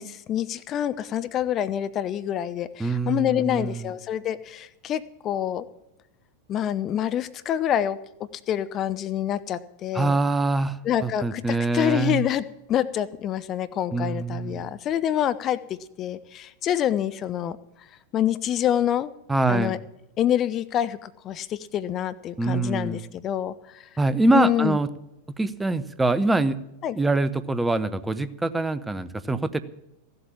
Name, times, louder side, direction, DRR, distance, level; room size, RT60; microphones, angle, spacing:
voice 1, 0.0-5.6 6.5-8.0 8.3-10.2 10.8-17.6 18.1-19.1 19.5-19.8 20.2-23.9 24.3-24.8 26.8-27.0, left 10 dB, 30° left, 13 dB, 0.6 m, -26 dB
voice 2, 2.8-3.9 9.9-12.2 13.9-14.7 19.3-19.7 22.4-23.1 24.0-24.9 25.4-26.6 26.9-29.6, right 2 dB, 10° right, 14 dB, 0.7 m, -24 dB
15.5 x 8.0 x 7.3 m, 0.90 s
figure-of-eight pair, 90°, 0 cm